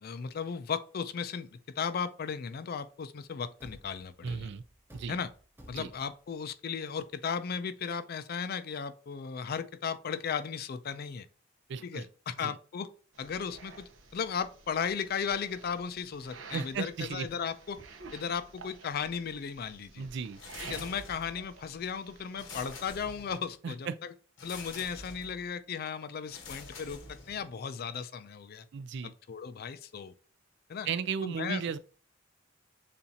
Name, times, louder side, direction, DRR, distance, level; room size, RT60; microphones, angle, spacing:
voice 1, 0.0-4.5 5.1-5.3 5.7-11.3 11.8-12.9 13.2-17.8 18.1-20.1 20.6-24.1 24.4-28.7 29.0-30.1 30.7-30.9 31.2-31.6, left 6 dB, 55° left, 0.4 m, -36 dB
Thump thud, 3.6-6.3, equal, 10° right, 0.7 m, -53 dB
voice 2, 4.2-4.6 4.9-5.2 5.7-5.9 11.7-12.0 12.4-12.6 16.5-17.3 20.0-20.4 23.6-23.9 28.7-29.1 30.8-31.8, right 6 dB, 65° right, 0.4 m, -35 dB
sound 1, 13.1-22.8, right 4 dB, 80° right, 0.8 m, -51 dB
sound 2, 20.3-21.5 22.3-23.6 24.4-25.4 26.3-27.6, left 4 dB, 75° left, 0.9 m, -47 dB
6.8 x 2.5 x 2.8 m
head